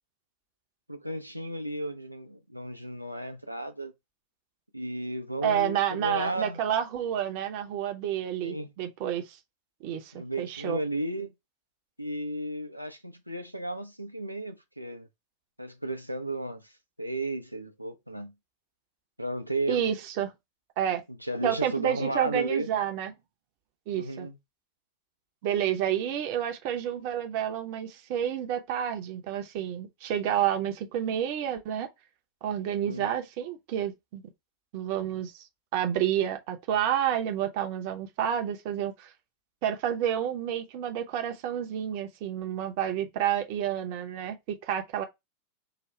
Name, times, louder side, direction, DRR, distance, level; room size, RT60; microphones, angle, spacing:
voice 1, 0.9-3.9 4.7-6.6 8.4-8.7 10.1-11.3 12.0-15.1 15.6-16.7 17.0-18.3 19.2-19.9 21.1-22.7 23.9-24.4 32.7-33.1, right 1 dB, 90° right, 0.6 m, -34 dB
voice 2, 5.4-9.4 9.8-10.8 19.7-20.3 20.8-21.0 21.4-23.1 23.9-24.3 25.4-31.9 32.4-34.2 34.7-35.4 35.7-39.1 39.6-45.0, right 10 dB, 45° right, 0.7 m, -29 dB
4.9 x 2.4 x 3.1 m
figure-of-eight pair, 90°, 0 cm